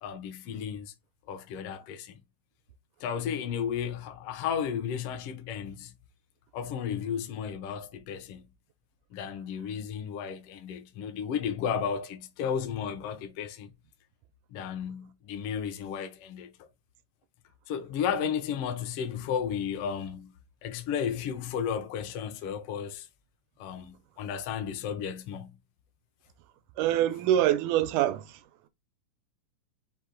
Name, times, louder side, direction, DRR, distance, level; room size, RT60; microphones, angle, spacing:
voice 1, 0.0-0.9 1.3-2.2 3.0-5.9 6.5-8.5 9.1-13.7 14.5-16.7 17.7-20.3 20.6-23.1 23.6-25.6, left 8 dB, 75° left, 1.4 m, -33 dB
voice 2, 26.8-28.4, right 12 dB, 85° right, 2.0 m, -25 dB
5.1 x 2.7 x 3.7 m
omnidirectional pair, 3.5 m